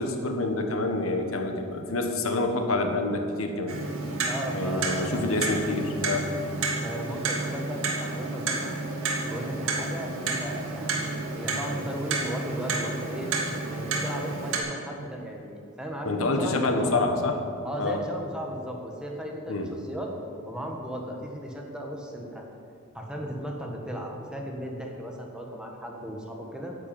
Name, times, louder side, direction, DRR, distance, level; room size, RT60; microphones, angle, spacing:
voice 1, 0.0-3.8 4.5-6.3 16.0-17.4 17.8-18.0 19.5-19.7, left 2 dB, 75° left, 5 dB, 1.4 m, -27 dB
Clock, 3.7-14.6, right 3 dB, 75° right, 2.2 m, -31 dB
voice 2, 4.3-5.2 6.8-8.8 9.3-13.3 13.7-17.0 17.6-20.1 20.4-22.4 22.9-26.8, equal, 5° right, 0 dB, 1.5 m, -36 dB
11.0 x 8.1 x 8.9 m, 2.5 s
head